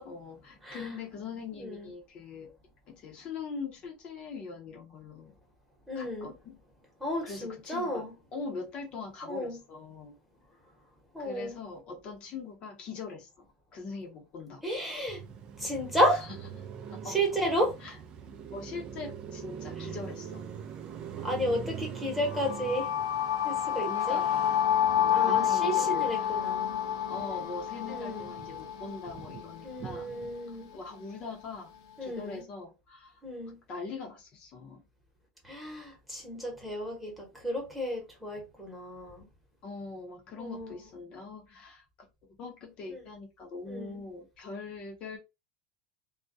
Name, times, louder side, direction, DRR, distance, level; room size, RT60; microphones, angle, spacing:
voice 1, 0.1-2.5 2.9-5.3 5.9-6.6 7.2-10.2 11.2-14.6 16.1-16.4 16.9-17.2 17.8-18.0 18.5-20.5 23.7-24.7 24.9-26.4 27.1-30.1 30.5-31.7 32.0-33.2 33.5-34.8 39.6-42.1 42.4-45.2, left 4 dB, 40° left, 0.6 m, -42 dB
voice 2, 5.9-6.3 7.0-8.1 9.3-9.6 11.1-11.6 14.6-15.2 15.6-16.3 17.0-17.7 21.2-22.9 23.4-24.2 25.1-26.8 27.9-28.3 29.6-30.7 32.0-32.4 33.2-33.6 35.4-39.3 40.4-40.7 42.9-43.0 43.7-44.0, equal, 5° right, 1.0 m, -32 dB
Car passing by, 15.1-27.5 27.9-30.4, right 7 dB, 35° right, 0.4 m, -43 dB
sound 1, 22.3-30.2, left 9 dB, 80° left, 0.7 m, -29 dB
2.3 x 2.1 x 2.6 m
supercardioid pair, 145°, 3 cm